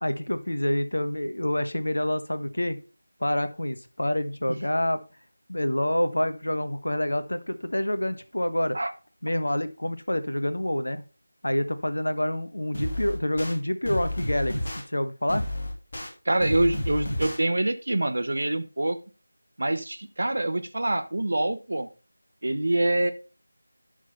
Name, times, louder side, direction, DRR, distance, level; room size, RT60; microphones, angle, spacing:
voice 1, 0.0-2.8 3.2-5.0 5.5-8.8 9.2-11.0 11.4-14.5 14.9-15.4, left 1 dB, 65° left, 11 dB, 1.1 m, -27 dB
sound 1, 12.7-13.5 13.8-14.8 15.3-16.1 16.4-17.4, left 1 dB, 40° left, 2.8 m, -30 dB
voice 2, 16.2-19.0 19.6-21.9 22.4-23.1, right 1 dB, 55° right, 10 dB, 1.0 m, -25 dB
11.5 x 3.8 x 5.2 m, 0.33 s
figure-of-eight pair, 165°, 0 cm